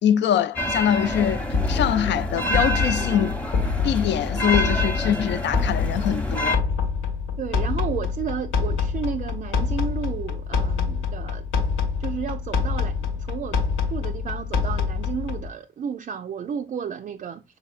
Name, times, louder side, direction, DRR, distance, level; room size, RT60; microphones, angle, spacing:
voice 1, 0.0-3.4 3.8-6.6, left 9 dB, 65° left, 0.4 m, -23 dB
sound 1, 0.6-6.6, equal, 5° left, 0.9 m, -28 dB
sound 2, 1.1-15.5, left 5 dB, 80° left, 1.2 m, -26 dB
voice 2, 7.4-11.5 12.0-13.6 13.9-17.4, right 7 dB, 40° right, 0.4 m, -32 dB
6.1 x 3.6 x 2.4 m
cardioid pair, 90°, 20 cm